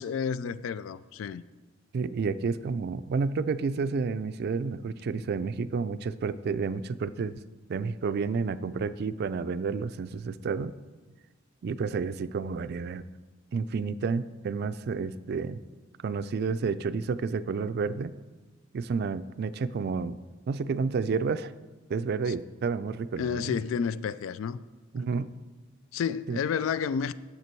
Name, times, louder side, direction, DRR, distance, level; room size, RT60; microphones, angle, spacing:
voice 1, 0.0-1.4 22.3-22.4 23.2-24.6 25.9-27.1, left 7 dB, 80° left, 0.3 m, -30 dB
voice 2, 1.9-7.4 7.7-10.7 11.6-13.0 13.5-15.6 16.0-18.1 18.7-20.2 20.5-21.5 21.9-23.6 24.9-25.3 26.3-26.4, right 5 dB, 55° right, 0.3 m, -30 dB
9.5 x 6.9 x 4.5 m
head